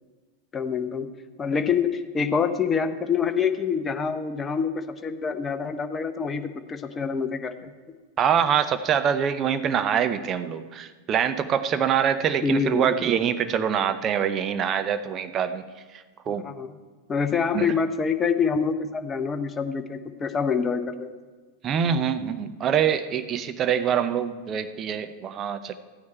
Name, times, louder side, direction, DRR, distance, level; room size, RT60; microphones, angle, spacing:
voice 1, 0.5-1.1 1.4-7.7 12.4-12.9 16.3-16.8 17.1-21.1, left 6 dB, 20° left, 9 dB, 0.8 m, -26 dB
voice 2, 8.2-15.6 16.3-16.5 17.5-17.7 21.6-25.7, right 8 dB, 30° right, 10 dB, 0.7 m, -24 dB
14.0 x 9.5 x 4.4 m, 1.4 s
figure-of-eight pair, 90°, 0 cm